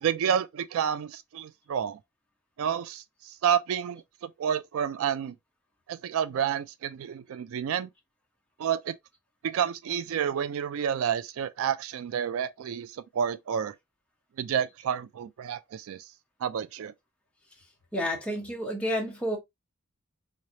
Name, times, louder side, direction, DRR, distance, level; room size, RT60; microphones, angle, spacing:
voice 1, 0.0-2.0 2.6-5.3 5.9-7.9 8.6-9.0 9.4-13.7 14.4-16.1 16.4-16.9, right 8 dB, 65° right, 0.3 m, -30 dB
voice 2, 17.9-19.4, equal, 5° left, 1.1 m, -30 dB
3.8 x 3.2 x 2.6 m
head